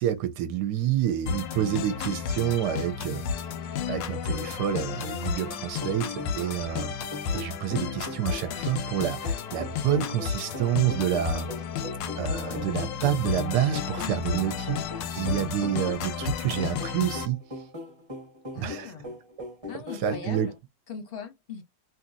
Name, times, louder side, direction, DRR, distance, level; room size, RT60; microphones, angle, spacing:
voice 1, 0.0-3.2 3.9-6.9 7.3-11.5 12.2-14.8 15.1-17.4 18.6-18.9 20.0-20.5, right 10 dB, 75° right, 1.1 m, -28 dB
sound 1, 1.3-17.3, left 7 dB, 85° left, 1.3 m, -32 dB
sound 2, 5.5-20.6, left 1 dB, 20° right, 0.8 m, -40 dB
voice 2, 18.5-19.1 19.7-20.5 20.9-21.6, left 6 dB, 45° left, 0.8 m, -39 dB
2.9 x 2.7 x 2.5 m
omnidirectional pair, 1.9 m